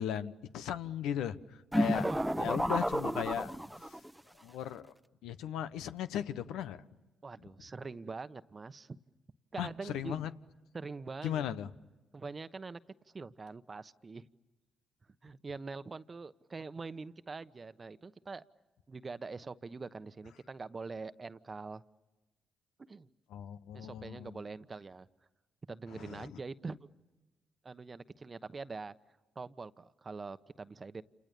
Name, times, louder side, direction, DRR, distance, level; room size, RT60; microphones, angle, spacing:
voice 1, 0.0-2.1 2.4-3.6 4.4-4.8 5.2-6.8 9.6-10.3 11.2-11.7 23.3-24.4 25.9-26.3, left 10 dB, 80° left, 12 dB, 1.0 m, -37 dB
sound 1, 1.7-4.1, equal, 5° right, 1.0 m, -31 dB
voice 2, 2.0-2.4 7.2-9.0 9.5-10.2 10.7-11.5 12.1-12.8 13.1-14.3 15.2-18.5 18.9-21.8 22.8-23.1 23.7-25.1 25.7-26.8 27.6-28.9 29.3-31.0, right 4 dB, 35° right, 14 dB, 1.1 m, -44 dB
29.0 x 28.0 x 6.9 m, 1.1 s
hypercardioid pair, 50°, 0 cm